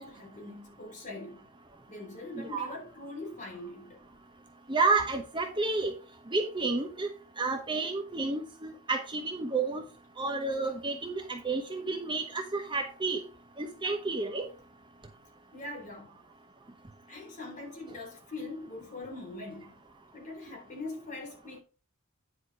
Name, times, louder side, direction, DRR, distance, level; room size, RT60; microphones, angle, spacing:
voice 1, 0.0-1.4 1.9-4.0 13.8-13.9 15.0-15.1 15.5-16.2 17.1-19.7 20.1-21.6, left 2 dB, 35° left, 3.9 m, -42 dB
voice 2, 4.7-5.9 6.3-7.1 7.4-9.8 10.2-13.2 13.6-14.4, right 3 dB, 20° right, 0.9 m, -30 dB
10.0 x 5.0 x 4.9 m
head